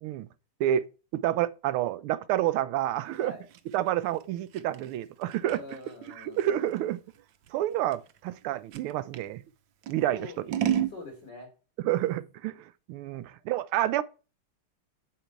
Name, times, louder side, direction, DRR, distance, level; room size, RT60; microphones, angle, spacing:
voice 1, 1.1-3.3 3.7-5.6 6.2-7.0 7.5-9.4 9.9-10.2 11.8-14.0, right 12 dB, 85° right, 1.5 m, -29 dB
Scissors, 3.1-9.3 9.8-11.0, right 10 dB, 70° right, 1.4 m, -34 dB
voice 2, 5.4-6.6 10.1-10.4 10.9-11.5 13.1-13.4, left 1 dB, 55° left, 4.5 m, -44 dB
9.1 x 8.2 x 4.6 m
omnidirectional pair, 2.3 m